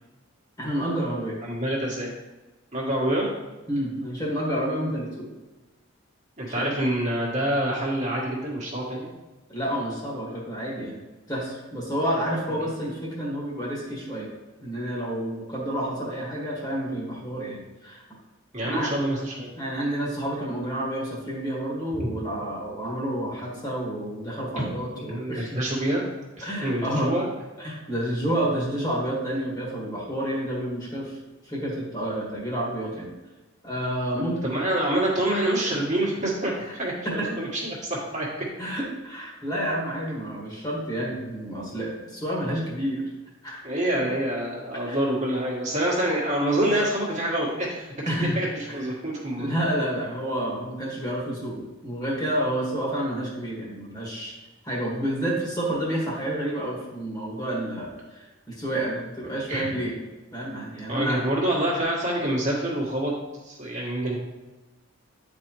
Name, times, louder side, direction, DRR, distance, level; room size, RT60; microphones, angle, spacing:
voice 1, 0.6-1.4 3.0-3.1 3.7-5.3 6.5-6.7 9.5-11.0 11.3-14.3 14.6-18.0 18.6-18.9 19.6-25.6 26.4-27.1 27.6-31.2 31.4-33.1 33.6-34.6 36.6-36.7 37.1-37.4 38.6-43.0 43.4-43.7 44.9-45.0 48.1-48.4 48.7-48.9 49.4-54.3 54.6-59.9 60.3-61.2, right 1 dB, 20° left, -5 dB, 1.6 m, -29 dB
voice 2, 1.4-2.1 2.7-3.3 6.4-9.1 18.5-19.5 22.0-22.1 24.6-24.7 25.1-26.0 26.4-27.2 34.2-38.5 43.6-49.6 59.5-59.8 60.9-63.1 63.4-64.1, right 1 dB, 35° right, -4 dB, 1.4 m, -26 dB
9.3 x 4.2 x 3.0 m, 1.1 s
head